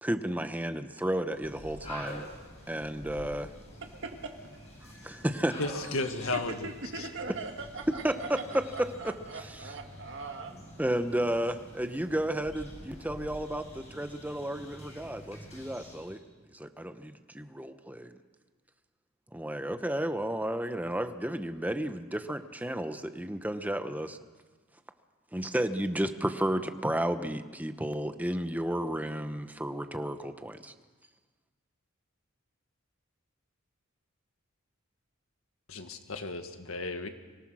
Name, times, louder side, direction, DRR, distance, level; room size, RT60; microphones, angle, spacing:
voice 1, 0.0-2.3 2.7-3.5 5.0-5.6 8.0-8.2 10.8-16.2 16.5-18.2 19.3-24.2 25.3-30.7, right 1 dB, 10° right, 9 dB, 0.9 m, -32 dB
sound 1, 1.3-16.2, equal, 30° left, 7.5 m, -47 dB
voice 2, 3.9-4.3 4.8-5.3 6.1-10.5, right 3 dB, 60° right, 3 dB, 1.7 m, -41 dB
voice 3, 5.6-6.7 35.7-37.1, left 2 dB, 75° left, 7 dB, 1.8 m, -34 dB
24.5 x 18.0 x 6.3 m, 1.4 s
head